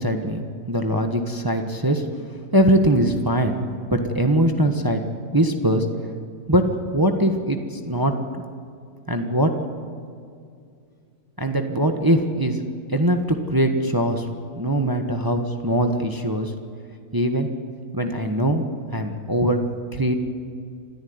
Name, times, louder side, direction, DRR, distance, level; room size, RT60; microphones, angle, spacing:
voice 1, 0.0-2.1 2.5-3.6 3.9-5.0 5.3-5.9 6.5-8.4 9.1-9.6 11.4-12.6 12.9-14.3 14.5-16.5 17.1-17.5 17.9-18.6 18.9-19.6 19.9-20.1, right 1 dB, 15° right, 5 dB, 1.2 m, -21 dB
27.0 x 14.0 x 9.5 m, 2.3 s
omnidirectional pair, 1.6 m